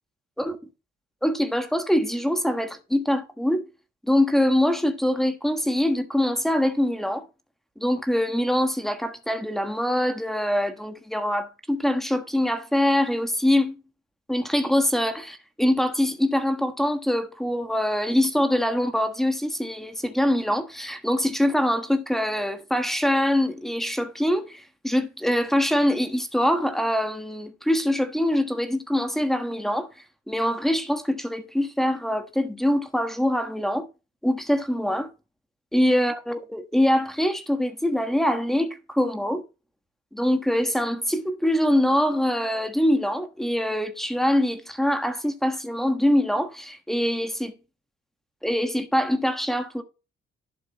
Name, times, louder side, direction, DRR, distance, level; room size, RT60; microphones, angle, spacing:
voice 1, 1.2-3.7 4.1-7.2 7.8-13.8 14.3-29.9 30.3-33.9 34.2-35.1 35.7-39.4 40.1-47.5 48.4-49.8, left 1 dB, ahead, 1.3 m, -24 dB
11.5 x 6.4 x 3.0 m
cardioid pair, 145°, 18 cm